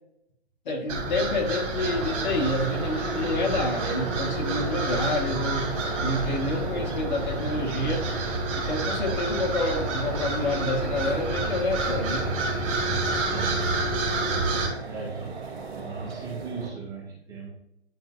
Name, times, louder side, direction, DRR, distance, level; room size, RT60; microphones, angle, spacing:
voice 1, 0.7-12.3, left 2 dB, 45° left, 1 dB, 1.6 m, -28 dB
sound 1, 0.9-14.7, right 2 dB, 30° right, 1.9 m, -29 dB
sound 2, 1.8-16.7, right 4 dB, 65° right, 2.3 m, -37 dB
voice 2, 13.3-13.6 14.8-15.4 15.8-17.5, right 4 dB, 10° right, -5 dB, 1.5 m, -37 dB
9.9 x 4.2 x 2.5 m, 0.79 s
figure-of-eight pair, 140°, 33 cm